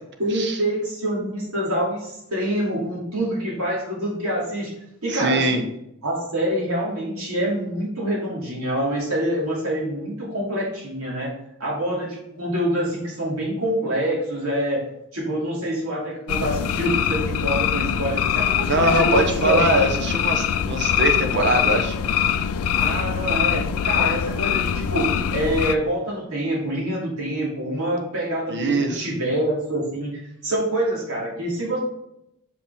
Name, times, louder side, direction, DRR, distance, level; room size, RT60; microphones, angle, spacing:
voice 1, 0.2-4.7 5.0-5.7 6.0-11.3 11.6-14.8 15.1-19.8 22.7-31.8, right 1 dB, 70° right, -4 dB, 2.7 m, -26 dB
voice 2, 5.1-5.6 18.7-22.0 28.5-29.2, right 2 dB, 50° right, 4 dB, 0.9 m, -22 dB
sound 1, 16.3-25.8, left 9 dB, 70° left, 0.4 m, -23 dB
6.6 x 5.1 x 3.5 m, 0.81 s
head